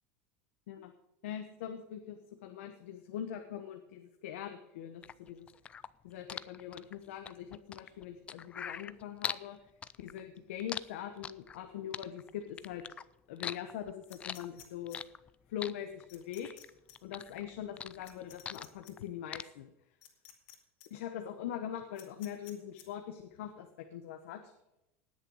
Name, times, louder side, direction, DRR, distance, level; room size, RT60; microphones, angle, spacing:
voice 1, 1.2-5.5 6.0-9.6 10.0-12.8 13.3-15.0 15.5-16.5 17.0-19.7 20.9-24.5, left 10 dB, 85° left, 5 dB, 1.2 m, -42 dB
sound 1, 5.0-9.5 9.8-11.6 11.9-13.0 13.4-15.3 15.6-16.7 16.9-19.0 19.3-19.4, left 7 dB, 20° left, 0.3 m, -41 dB
sound 2, 14.1-15.0 16.1-16.6 16.9-17.0 18.0-18.9 20.0-20.5 20.8-20.9 22.0-22.9, left 12 dB, 65° left, 2.5 m, -54 dB
19.0 x 6.8 x 4.9 m, 0.88 s
supercardioid pair, 160°, 7 cm